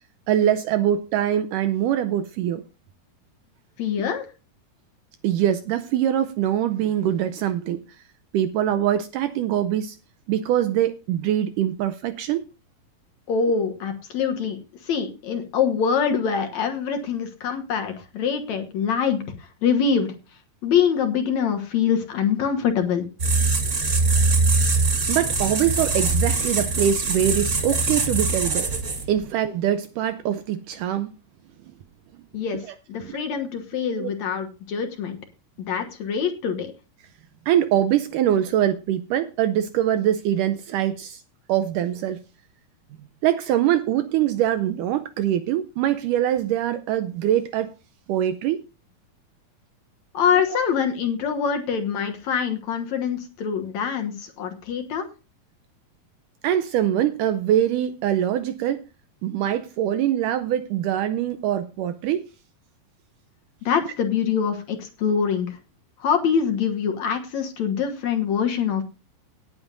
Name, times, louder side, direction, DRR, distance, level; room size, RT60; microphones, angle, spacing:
voice 1, 0.3-2.6 5.2-7.8 8.3-10.0 10.3-12.5 25.1-28.7 29.1-31.1 33.0-33.2 34.0-34.1 37.5-41.2 41.5-42.2 43.2-47.7 48.1-48.6 56.4-58.9 59.2-62.3, right 11 dB, 80° right, 1.9 m, -23 dB
voice 2, 3.8-4.3 13.3-14.6 14.8-20.1 20.6-23.1 32.3-32.6 32.9-35.2 35.7-36.7 50.1-55.1 63.7-65.5 66.0-68.8, left 7 dB, 60° left, 2.2 m, -24 dB
sound 1, 23.2-29.2, right 3 dB, 60° right, 0.7 m, -22 dB
18.5 x 8.9 x 2.6 m
omnidirectional pair, 4.2 m